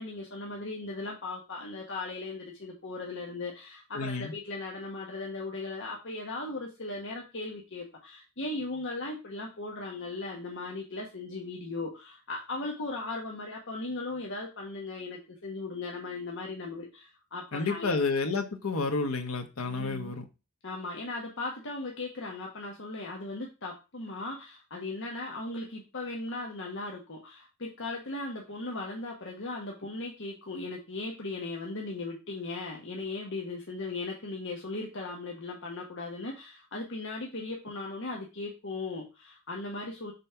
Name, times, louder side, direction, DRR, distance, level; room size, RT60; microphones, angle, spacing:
voice 1, 0.0-18.0 19.6-20.2 20.6-40.1, left 2 dB, 60° left, 1.2 m, -38 dB
voice 2, 3.9-4.3 17.5-20.2, left 3 dB, 85° left, 1.2 m, -30 dB
5.4 x 4.1 x 5.7 m
head